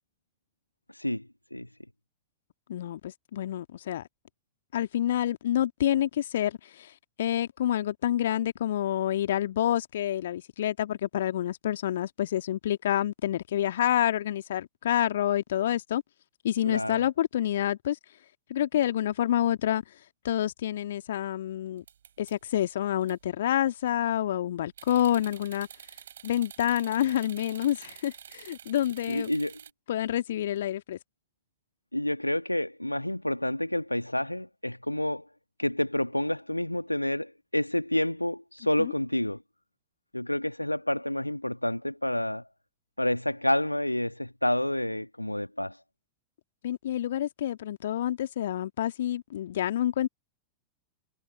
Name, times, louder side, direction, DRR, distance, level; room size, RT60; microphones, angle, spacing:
voice 1, 1.0-1.7 16.6-17.1 29.1-29.6 31.9-35.3 35.6-39.4 40.1-42.4 43.0-45.8, left 1 dB, 85° left, 1.8 m, -29 dB
voice 2, 2.7-4.1 4.7-6.9 7.2-16.0 16.4-18.0 18.5-19.8 20.2-21.8 22.2-25.7 26.2-29.3 29.9-31.0 38.8-38.9 46.6-50.1, left 11 dB, 60° left, 1.6 m, -28 dB
sound 1, 21.8-22.6 23.0-23.2 23.6-24.0 24.8-29.7, right 9 dB, 65° right, 5.7 m, -48 dB
figure-of-eight pair, 90°, 0 cm